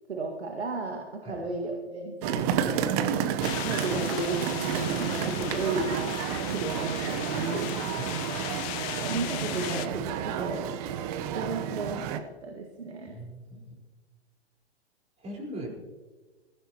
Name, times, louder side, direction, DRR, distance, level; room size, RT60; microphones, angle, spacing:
voice 1, 0.1-3.2 3.5-6.1 6.5-7.7 9.0-10.7 11.4-13.2, right 3 dB, 85° right, 2 dB, 1.9 m, -34 dB
sound 1, 2.2-12.2, right 9 dB, 35° right, 0.9 m, -30 dB
voice 2, 2.5-2.8 7.9-8.2 13.1-13.6 15.2-15.7, right 1 dB, 20° right, -1 dB, 4.4 m, -39 dB
sound 2, 3.4-9.9, left 14 dB, 35° left, 0.8 m, -37 dB
20.5 x 15.5 x 3.0 m, 1.3 s
hypercardioid pair, 120°, 32 cm